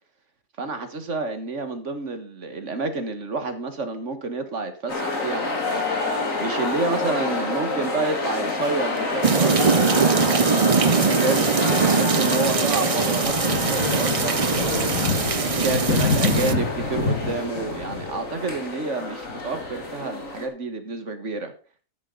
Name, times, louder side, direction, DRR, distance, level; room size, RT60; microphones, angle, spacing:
voice 1, 0.6-21.5, right 3 dB, 60° right, 8 dB, 2.0 m, -29 dB
sound 1, 4.9-20.5, left 3 dB, 70° left, 3.0 m, -26 dB
sound 2, 9.2-16.5, right 5 dB, 35° right, 0.6 m, -22 dB
12.5 x 10.5 x 4.0 m, 0.36 s
omnidirectional pair, 1.4 m